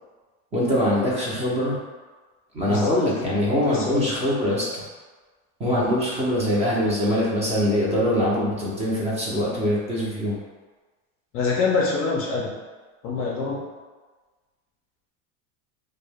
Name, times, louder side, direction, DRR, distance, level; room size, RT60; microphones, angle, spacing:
voice 1, 0.5-1.8 2.5-4.9 5.6-10.4, equal, 15° right, -6 dB, 0.5 m, -23 dB
voice 2, 2.7-3.4 3.6-4.2 5.6-5.9 11.3-12.5 13.0-13.6, left 4 dB, 35° left, -3 dB, 0.4 m, -26 dB
2.1 x 2.1 x 3.3 m, 1.3 s
supercardioid pair, 130°, 38 cm